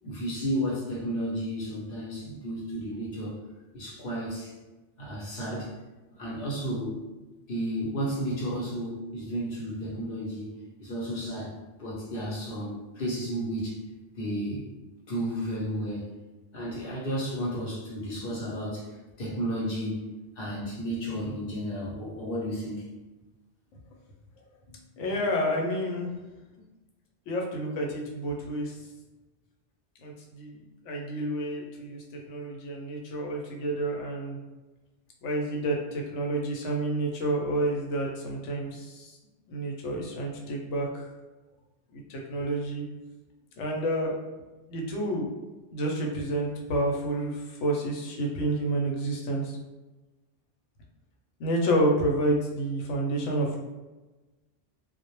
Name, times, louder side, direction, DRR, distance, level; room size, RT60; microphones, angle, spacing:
voice 1, 0.0-3.3 3.7-4.5 5.0-5.7 6.2-7.0 7.5-10.5 10.8-11.5 11.8-13.8 14.1-14.7 15.1-16.1 16.5-18.8 19.2-20.1 20.4-22.9, equal, 60° left, -5 dB, 0.8 m, -32 dB
voice 2, 25.0-26.1 27.3-28.8 30.0-34.4 35.2-39.2 39.5-41.1 41.9-42.9 43.6-44.2 44.7-45.3 45.7-49.6 51.4-53.6, right 1 dB, 90° left, 0 dB, 0.9 m, -29 dB
2.0 x 2.0 x 2.9 m, 1.1 s
omnidirectional pair, 1.2 m